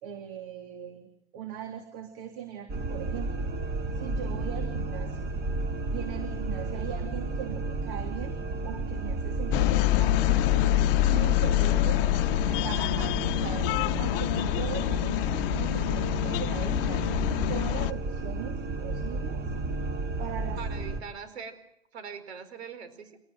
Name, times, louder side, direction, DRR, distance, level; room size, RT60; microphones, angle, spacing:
voice 1, 0.0-3.5 3.9-5.3 5.9-8.3 8.6-10.3 10.6-10.7 11.1-12.0 12.5-13.7 14.0-17.0 17.5-19.4 20.2-20.6, right 9 dB, 55° right, 7 dB, 3.2 m, -40 dB
sound 1, 2.7-21.0, right 2 dB, 30° right, 3.7 m, -33 dB
sound 2, 9.5-17.9, left 18 dB, 55° left, 0.9 m, -26 dB
voice 2, 20.6-21.6 21.9-23.2, right 6 dB, 75° right, 11 dB, 4.7 m, -41 dB
25.5 x 19.0 x 7.9 m, 0.71 s
hypercardioid pair, 100°, 33 cm